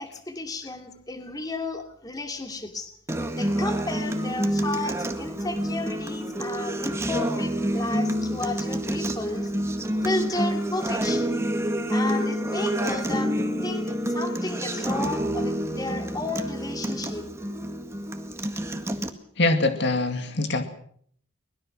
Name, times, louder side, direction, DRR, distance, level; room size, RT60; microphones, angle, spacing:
voice 1, 0.0-2.9 3.4-9.5 10.0-11.5 11.9-17.3, left 2 dB, 20° left, 5 dB, 2.6 m, -33 dB
Acoustic guitar, 3.1-19.1, equal, 15° right, 1.8 m, -28 dB
voice 2, 19.4-20.6, left 2 dB, 55° left, 7 dB, 2.2 m, -23 dB
23.5 x 21.0 x 6.2 m, 0.62 s
head